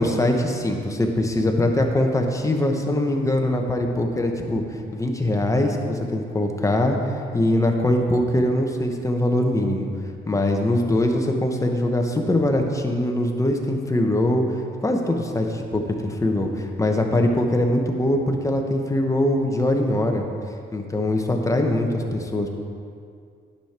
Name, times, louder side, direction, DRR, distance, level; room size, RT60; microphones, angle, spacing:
voice 1, 0.0-4.6 4.9-9.9 10.3-14.4 14.8-20.2 20.7-22.5, left 1 dB, 15° left, 2 dB, 1.1 m, -22 dB
10.0 x 6.7 x 4.4 m, 2.3 s
cardioid pair, 90°, 20 cm